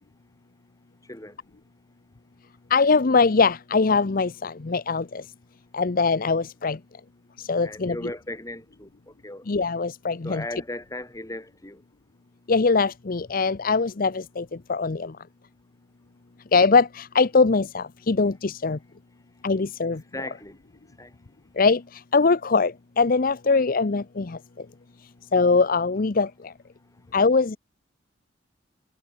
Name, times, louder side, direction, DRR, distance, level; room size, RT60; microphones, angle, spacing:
voice 1, 2.7-5.2 5.7-6.8 7.5-8.0 9.5-10.4 12.5-15.1 16.5-18.8 19.4-20.0 21.6-21.8 22.1-24.4 25.3-26.3 27.1-27.6, left 4 dB, 50° left, 0.7 m, -22 dB
voice 2, 7.6-9.5 10.2-11.8 20.1-20.6 21.0-21.1, left 1 dB, 20° left, 5.2 m, -37 dB
head